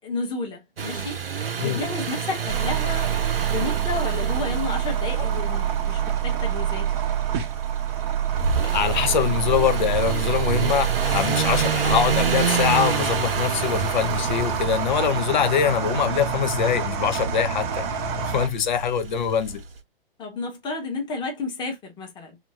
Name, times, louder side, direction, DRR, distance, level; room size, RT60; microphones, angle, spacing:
voice 1, 0.0-1.2 1.6-6.9 20.2-22.4, left 3 dB, 15° left, 1.3 m, -32 dB
sound 1, 0.8-19.6, right 6 dB, 70° right, 0.8 m, -29 dB
sound 2, 2.5-18.5, right 9 dB, 30° right, 0.7 m, -26 dB
voice 2, 8.6-17.9 18.2-19.6, left 8 dB, 50° left, 0.8 m, -24 dB
3.5 x 3.0 x 3.4 m
figure-of-eight pair, 120°, 29 cm